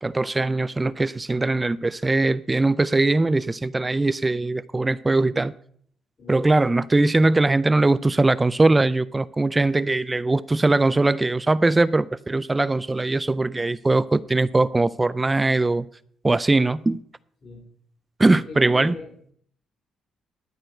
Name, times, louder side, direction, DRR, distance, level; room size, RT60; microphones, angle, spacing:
voice 1, 0.0-5.5 6.3-15.9 16.2-17.0 18.2-18.9, right 2 dB, 20° right, 0.4 m, -21 dB
voice 2, 6.2-6.6 17.4-17.7 18.3-19.3, left 3 dB, 50° left, 3.9 m, -40 dB
12.0 x 4.8 x 7.7 m
cardioid pair, 90°, 0 cm